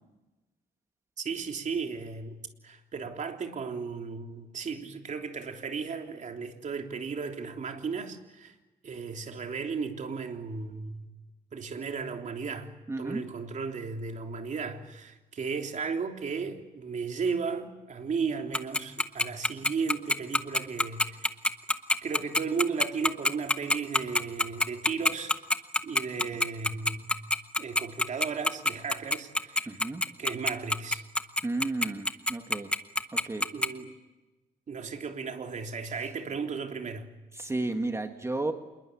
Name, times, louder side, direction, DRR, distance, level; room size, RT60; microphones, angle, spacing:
voice 1, 1.2-2.4 2.6-8.5 8.8-11.0 11.5-12.7 13.0-21.3 22.0-25.4 25.8-27.1 27.6-29.8 30.2-31.0 33.5-33.9 34.7-37.1, right 5 dB, 45° right, 3.3 m, -35 dB
voice 2, 12.9-13.2 29.7-30.0 31.4-32.7 33.1-33.5 37.3-38.5, right 2 dB, 15° right, 1.7 m, -32 dB
Tick-tock, 18.5-33.7, left 1 dB, 5° left, 1.2 m, -25 dB
27.5 x 21.5 x 8.6 m
cardioid pair, 140°, 17 cm